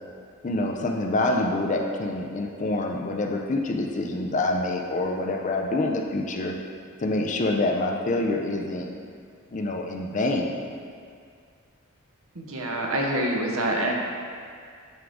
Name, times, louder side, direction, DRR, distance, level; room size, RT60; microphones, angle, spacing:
voice 1, 0.4-6.5 7.0-8.9 9.5-10.7, left 2 dB, 35° left, 2 dB, 0.4 m, -26 dB
voice 2, 12.3-13.9, right 1 dB, 70° right, 0 dB, 0.9 m, -26 dB
9.1 x 3.7 x 3.5 m, 2.2 s
head